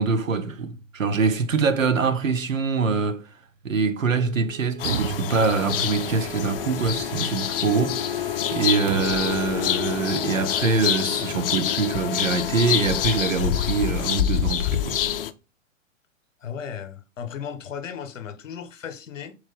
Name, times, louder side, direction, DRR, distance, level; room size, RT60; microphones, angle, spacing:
voice 1, 0.0-3.3 3.6-15.0, right 4 dB, 90° right, 0.8 m, -24 dB
Wind instrument woodwind instrument, 4.1-12.6, right 8 dB, 40° right, 1.0 m, -42 dB
sound 1, 4.8-15.3, left 10 dB, 50° left, 0.5 m, -26 dB
sound 2, 4.8-6.3 8.9-9.5, right 8 dB, 55° right, 0.5 m, -32 dB
voice 2, 16.4-19.4, left 7 dB, 75° left, 0.8 m, -35 dB
3.9 x 3.1 x 3.8 m
hypercardioid pair, 115°, 38 cm